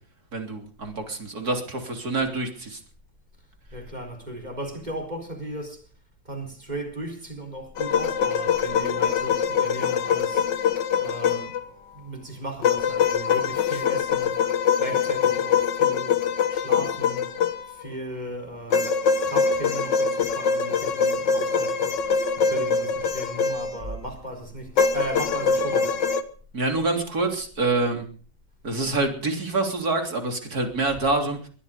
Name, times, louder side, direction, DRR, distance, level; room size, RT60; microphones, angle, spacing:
voice 1, 0.3-2.8 26.5-28.1 28.6-31.5, right 3 dB, 55° right, 3.9 m, -26 dB
voice 2, 3.7-5.8 6.2-10.5 11.0-11.6 11.9-14.4 14.8-17.3 17.7-19.0 19.2-22.1 22.4-26.0, right 1 dB, 20° right, 4.4 m, -36 dB
sound 1, 7.8-11.6 12.6-17.9 18.7-23.9 24.8-26.2, left 6 dB, 75° left, 1.9 m, -23 dB
21.5 x 13.0 x 5.2 m
omnidirectional pair, 2.0 m